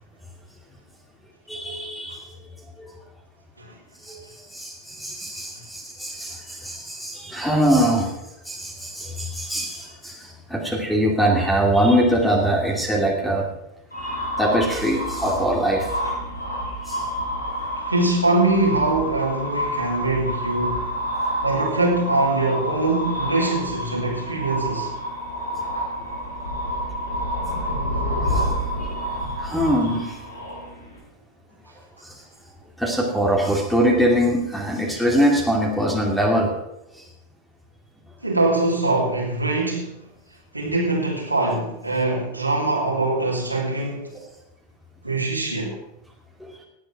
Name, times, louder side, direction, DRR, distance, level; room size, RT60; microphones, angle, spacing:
voice 1, 1.5-2.3 2.8-2.9 4.0-8.1 8.4-13.5 14.0-16.0 16.8-17.1 28.2-28.5 28.8-29.0 29.4-30.2 32.0-32.2 32.8-36.5 36.9-37.1 44.1-44.2 46.4-46.5, equal, 5° left, 2.6 m, -23 dB
sound 1, 13.9-31.0, equal, 80° left, 5.4 m, -28 dB
voice 2, 17.8-21.0 21.4-24.9 38.2-39.9 40.5-44.1 45.0-45.8, right 2 dB, 85° right, 3.1 m, -23 dB
18.0 x 8.1 x 5.9 m
figure-of-eight pair, 90°, 0 cm